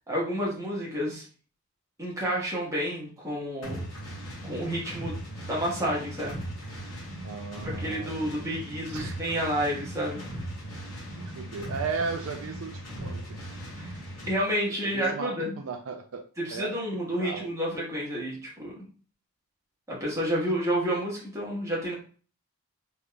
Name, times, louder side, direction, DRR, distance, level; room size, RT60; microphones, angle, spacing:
voice 1, 0.1-1.2 2.0-3.8 4.4-5.2 5.5-6.4 7.8-10.2 13.8-13.9 14.3-15.6 16.4-18.7 19.9-21.9, equal, 15° right, -5 dB, 1.3 m, -30 dB
sound 1, 3.6-14.4, right 1 dB, 75° left, 1.7 m, -38 dB
voice 2, 7.2-9.2 11.1-13.4 14.7-16.2 16.5-17.5, right 5 dB, 65° right, 5 dB, 0.4 m, -36 dB
3.6 x 3.4 x 2.3 m, 0.40 s
head